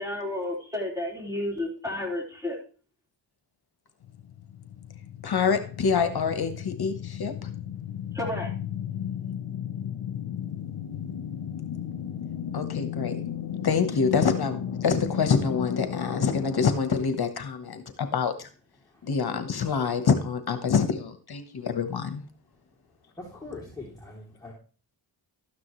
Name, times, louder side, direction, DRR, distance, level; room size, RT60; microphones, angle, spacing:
voice 1, 0.0-2.6 8.1-8.5, left 1 dB, 10° right, 4.3 m, -31 dB
sound 1, 4.0-16.6, left 9 dB, 75° left, 0.9 m, -35 dB
voice 2, 5.2-7.5 12.5-13.2 13.6-18.5 19.0-22.2, left 6 dB, 55° left, 1.3 m, -26 dB
voice 3, 23.2-24.5, left 3 dB, 10° left, 3.2 m, -41 dB
13.0 x 9.5 x 3.2 m
cardioid pair, 70°, 44 cm